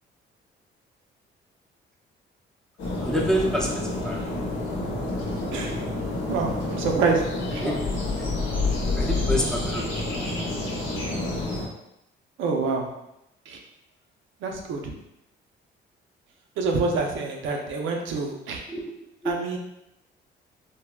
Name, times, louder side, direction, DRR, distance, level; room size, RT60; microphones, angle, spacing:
sound 1, 2.8-11.7, left 2 dB, 75° left, 0.8 m, -28 dB
voice 1, 3.0-4.3 7.6-7.8 9.0-10.3 18.7-18.9 19.2-19.4, equal, 5° left, -2 dB, 0.5 m, -28 dB
voice 2, 5.5-5.8 6.3-7.2 7.5-7.6 12.4-12.9 13.5-13.6 14.4-14.8 16.6-18.6 19.2-19.6, right 4 dB, 80° right, 2 dB, 0.5 m, -26 dB
3.3 x 2.1 x 2.2 m, 0.85 s
cardioid pair, 90°, 20 cm